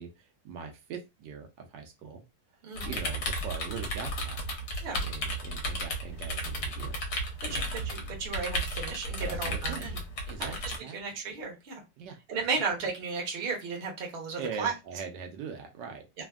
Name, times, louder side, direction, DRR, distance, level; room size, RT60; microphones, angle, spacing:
voice 1, 0.0-2.2 2.8-4.4 5.0-7.0 7.4-7.9 9.2-10.0 10.3-11.0 12.0-12.2 12.5-12.6 14.4-16.1, right 6 dB, 80° right, 4 dB, 1.2 m, -41 dB
voice 2, 2.6-2.9 4.8-5.0 7.5-10.0 10.4-10.6 10.9-11.8 12.3-14.7, right 4 dB, 45° right, -1 dB, 0.8 m, -34 dB
sound 1, 2.7-10.8, equal, 65° left, 1.2 m, -34 dB
3.3 x 2.1 x 2.3 m, 0.24 s
omnidirectional pair, 2.0 m